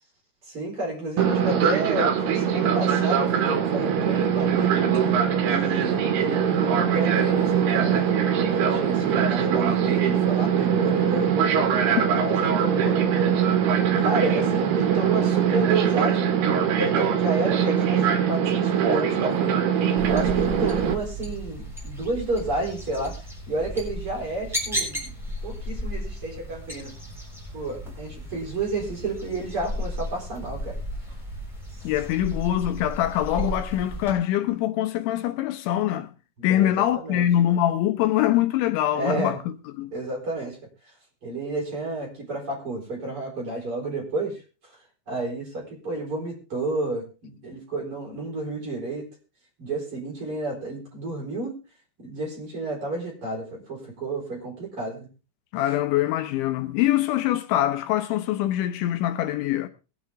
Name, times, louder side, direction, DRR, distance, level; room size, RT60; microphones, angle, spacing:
voice 1, 0.4-4.8 5.4-8.1 8.7-11.3 11.9-13.0 14.0-25.1 25.4-26.9 27.5-30.8 36.4-37.3 39.0-39.4 39.9-40.6 40.8-40.9 41.2-44.8 45.1-49.1 49.6-51.6 52.0-55.1, right 2 dB, 30° right, 5.1 m, -31 dB
Fixed-wing aircraft airplane, 1.2-20.9, right 8 dB, 65° right, 3.6 m, -22 dB
sound 1, 20.0-34.1, equal, ahead, 5.7 m, -34 dB
voice 2, 31.8-36.1 36.4-39.4 39.8-39.9 55.5-59.7, left 12 dB, 80° left, 3.2 m, -24 dB
22.0 x 8.7 x 3.6 m
omnidirectional pair, 5.5 m